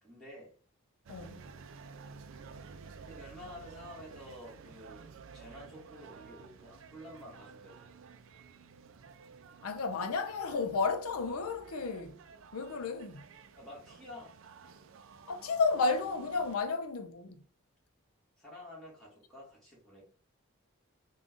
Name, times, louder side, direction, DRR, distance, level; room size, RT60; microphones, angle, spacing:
voice 1, 0.0-0.6 3.1-8.0 13.5-14.4 18.4-20.0, left 1 dB, ahead, 1.7 m, -50 dB
voice 2, 1.1-1.5 9.6-12.2 12.5-13.2 15.3-17.4, left 4 dB, 90° left, 0.5 m, -32 dB
sound 1, 1.1-16.6, right 5 dB, 65° right, 0.4 m, -53 dB
3.7 x 2.3 x 3.6 m
head